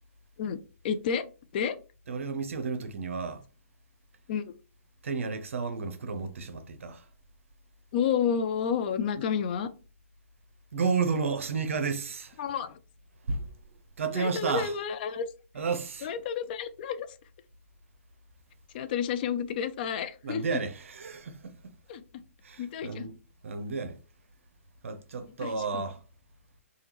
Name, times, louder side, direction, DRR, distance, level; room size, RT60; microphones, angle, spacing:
voice 1, 0.8-1.3 1.5-1.8 4.3-4.4 7.9-9.7 12.4-12.8 14.1-15.3 16.0-17.1 18.7-20.6 21.9-22.0 22.6-23.1 25.4-25.8, left 7 dB, 40° left, 0.4 m, -30 dB
voice 2, 2.1-3.4 5.0-7.1 10.7-12.4 13.3-13.5 14.0-14.7 15.5-16.1 20.2-21.7 22.4-23.2 23.4-24.0 24.8-26.0, right 5 dB, 65° right, 0.6 m, -32 dB
3.4 x 2.2 x 2.9 m
figure-of-eight pair, 125°, 8 cm